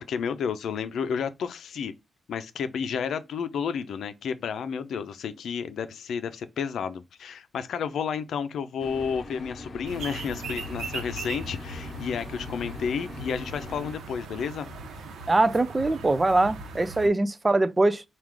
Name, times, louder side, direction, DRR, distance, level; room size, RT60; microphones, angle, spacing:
voice 1, 0.1-1.9 2.3-14.7 17.0-17.1, left 6 dB, 70° left, 0.6 m, -31 dB
sound 1, 8.8-13.9, left 2 dB, 30° left, 0.9 m, -42 dB
sound 2, 9.9-17.1, right 2 dB, 80° right, 0.9 m, -39 dB
voice 2, 15.3-18.0, right 2 dB, 20° right, 0.4 m, -22 dB
4.7 x 2.4 x 3.7 m
wide cardioid pair, 140°, 0 cm